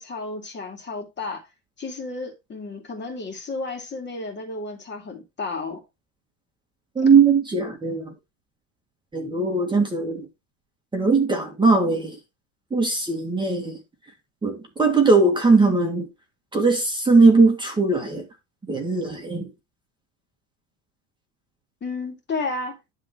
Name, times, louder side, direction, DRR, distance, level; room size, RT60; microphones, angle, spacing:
voice 1, 0.0-1.4 1.8-5.8 21.8-22.7, left 3 dB, 30° left, 2.5 m, -32 dB
voice 2, 7.0-8.1 9.1-10.3 10.9-12.2 12.7-13.8 14.4-16.1 16.5-18.2 18.7-19.5, right 4 dB, 10° right, 1.8 m, -19 dB
11.5 x 3.8 x 4.4 m
cardioid pair, 140°, 38 cm